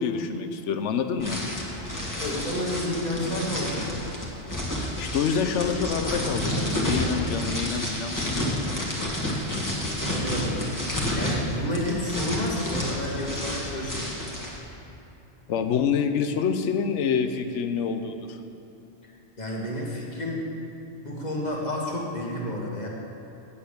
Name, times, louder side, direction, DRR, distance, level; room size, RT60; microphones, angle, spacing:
voice 1, 0.0-1.4 4.8-8.6 15.5-18.4, left 6 dB, 90° left, 7 dB, 1.0 m, -27 dB
sound 1, 1.2-14.6, left 1 dB, 15° left, 1.5 m, -30 dB
voice 2, 2.2-3.9 10.0-10.6 11.1-14.1 19.4-20.5 21.0-22.9, left 1 dB, 40° left, -3 dB, 1.6 m, -30 dB
8.3 x 8.0 x 6.6 m, 2.9 s
omnidirectional pair, 1.2 m